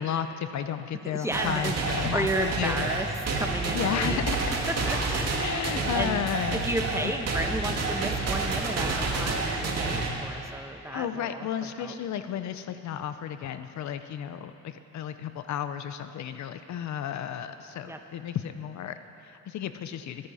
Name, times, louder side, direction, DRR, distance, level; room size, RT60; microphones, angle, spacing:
voice 1, 0.0-2.9 3.7-4.5 5.4-6.7 7.0-7.1 10.9-20.3, left 9 dB, 65° left, 10 dB, 0.7 m, -33 dB
voice 2, 1.0-3.1 3.4-4.2 4.5-5.5 5.9-6.3 6.5-11.5 11.8-11.9 17.8-18.0, right 1 dB, 10° right, 4 dB, 1.2 m, -33 dB
sound 1, 1.3-10.1, right 3 dB, 55° right, 2.2 m, -29 dB
22.5 x 10.5 x 4.2 m, 2.8 s
cardioid pair, 90°, 30 cm